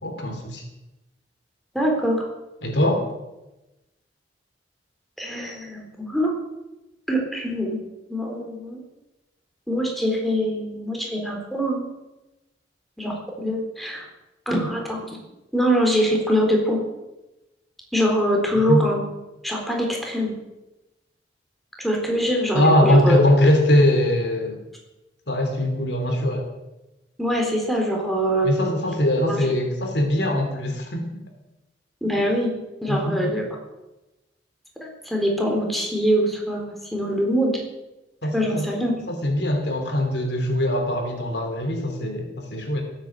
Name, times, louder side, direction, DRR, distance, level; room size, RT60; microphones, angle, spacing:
voice 1, 0.0-0.6 2.6-3.0 18.7-18.8 22.5-24.6 25.3-26.5 28.4-31.1 32.9-33.3 38.2-38.7 39.1-42.8, left 1 dB, 70° left, 4 dB, 3.2 m, -21 dB
voice 2, 1.7-2.2 5.2-6.3 7.1-7.8 8.1-8.8 9.7-11.8 13.0-14.1 14.5-15.2 15.5-16.8 17.9-19.0 19.4-20.3 21.8-23.2 27.2-28.5 29.3-29.5 32.0-32.5 32.8-33.4 34.8-37.5 38.3-38.9, equal, ahead, 0 dB, 3.9 m, -23 dB
19.0 x 8.9 x 7.7 m, 1.0 s
head